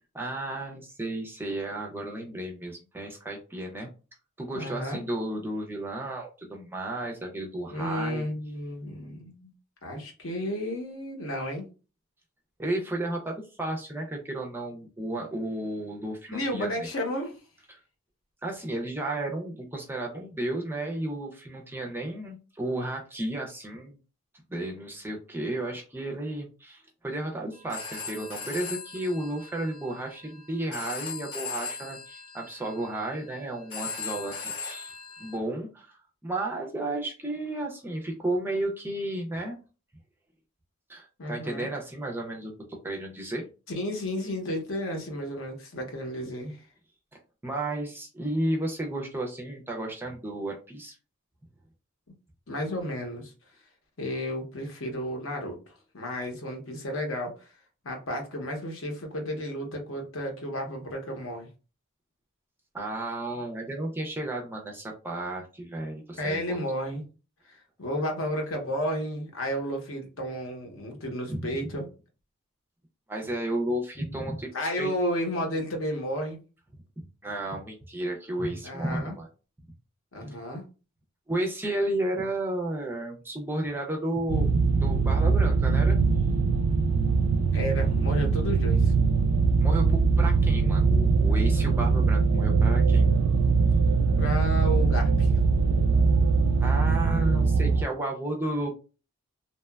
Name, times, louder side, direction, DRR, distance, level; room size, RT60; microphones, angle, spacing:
voice 1, 0.1-3.9 4.4-8.2 12.6-16.7 17.7-17.8 18.4-24.0 24.5-39.6 40.9-43.4 47.4-50.9 62.7-66.6 73.1-74.5 74.8-74.9 77.0-79.3 81.3-84.5 84.8-86.1 89.6-93.1 96.6-98.7, right 1 dB, 10° right, 0.4 m, -33 dB
voice 2, 4.5-5.0 7.7-9.5 9.8-11.6 16.3-17.4 41.2-41.7 43.7-46.7 52.5-53.3 54.0-57.6 57.8-61.5 66.2-67.0 67.4-71.9 74.5-76.4 78.6-79.2 80.1-80.6 87.5-88.9 94.2-95.3, equal, 65° left, 0.8 m, -32 dB
Telephone, 27.5-35.4, left 4 dB, 90° left, 1.1 m, -39 dB
sound 1, 84.3-97.8, right 4 dB, 80° right, 0.3 m, -22 dB
2.8 x 2.1 x 2.2 m
head